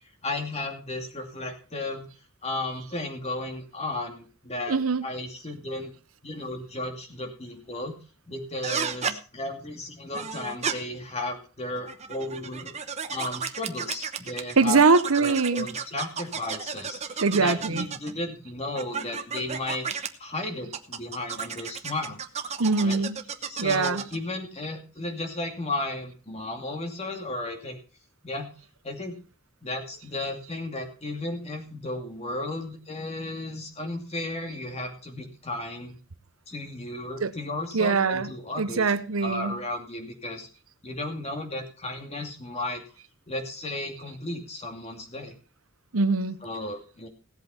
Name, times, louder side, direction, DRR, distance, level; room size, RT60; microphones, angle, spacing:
voice 1, 0.2-2.1 2.4-4.8 5.0-5.9 6.2-8.0 8.3-12.7 13.1-14.8 15.2-19.9 20.2-22.2 22.8-23.0 23.5-27.8 28.2-28.5 28.8-29.2 29.6-36.0 36.5-38.9 39.2-40.5 40.8-42.8 43.3-45.3 46.4-47.1, left 2 dB, 30° left, 4 dB, 2.5 m, -34 dB
voice 2, 4.7-5.0 14.6-15.7 17.2-17.9 22.6-23.2 23.6-24.0 37.2-37.3 37.7-39.6 45.9-46.4, right 4 dB, 75° right, 12 dB, 0.9 m, -23 dB
sound 1, 8.6-9.2 10.1-10.7 11.8-14.5 14.9-18.1 18.8-20.1 20.7-24.2, right 6 dB, 30° right, 1.0 m, -33 dB
17.0 x 8.1 x 4.3 m, 0.36 s
head